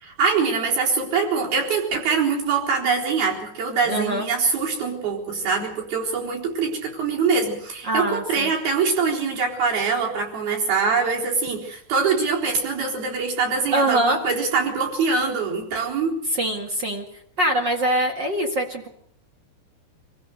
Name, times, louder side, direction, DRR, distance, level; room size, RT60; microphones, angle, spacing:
voice 1, 0.0-16.1, right 5 dB, 60° right, -2 dB, 5.8 m, -23 dB
voice 2, 3.9-4.3 7.8-8.5 13.7-14.2 16.3-17.1 17.4-18.9, right 1 dB, 40° right, 3 dB, 1.7 m, -23 dB
25.5 x 16.0 x 6.7 m, 0.66 s
omnidirectional pair, 4.8 m